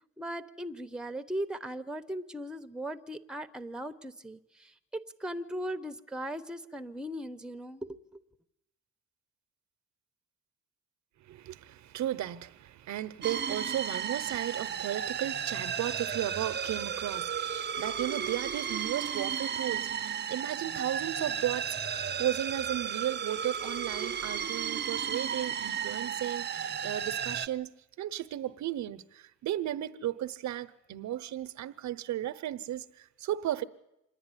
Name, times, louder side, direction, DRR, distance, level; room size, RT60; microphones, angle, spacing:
voice 1, 0.2-8.2, right 1 dB, 5° right, 0.9 m, -38 dB
voice 2, 11.2-27.7 28.0-33.6, right 12 dB, 70° right, 0.8 m, -35 dB
sound 1, 13.2-27.5, right 8 dB, 35° right, 0.7 m, -34 dB
26.5 x 10.5 x 9.8 m
cardioid pair, 90°, 30 cm